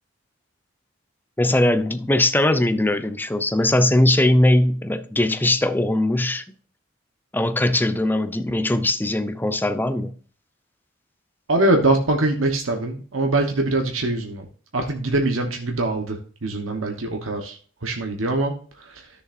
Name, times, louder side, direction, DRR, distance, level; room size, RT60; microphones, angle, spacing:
voice 1, 1.4-6.4 7.3-10.2, left 1 dB, 10° left, 0.6 m, -20 dB
voice 2, 11.5-14.5 14.7-17.6 17.8-18.5 18.8-19.0, right 2 dB, 80° right, 1.1 m, -23 dB
13.0 x 6.8 x 2.6 m
head